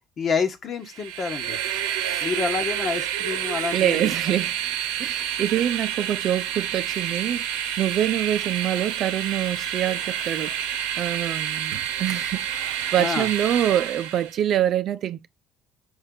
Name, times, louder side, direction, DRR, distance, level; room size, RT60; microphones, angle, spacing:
voice 1, 0.2-1.6 2.2-4.0 13.0-13.3, left 5 dB, 45° left, 1.4 m, -28 dB
Train, 0.9-14.4, right 10 dB, 75° right, 0.8 m, -29 dB
voice 2, 3.7-4.6 5.0-10.7 11.0-15.3, right 11 dB, 55° right, 0.5 m, -25 dB
5.5 x 4.9 x 3.9 m
hypercardioid pair, 55°, 0 cm